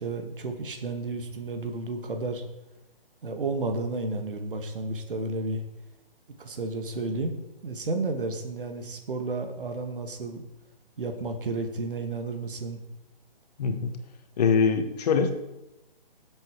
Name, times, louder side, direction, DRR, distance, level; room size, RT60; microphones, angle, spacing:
voice 1, 0.0-2.4 3.2-5.6 6.4-7.4 7.6-10.4 11.0-12.8, right 3 dB, 65° right, 5 dB, 2.1 m, -32 dB
voice 2, 13.6-13.9 14.4-15.3, left 5 dB, 45° left, 7 dB, 1.6 m, -23 dB
18.0 x 7.8 x 4.8 m, 0.97 s
figure-of-eight pair, 140°, 29 cm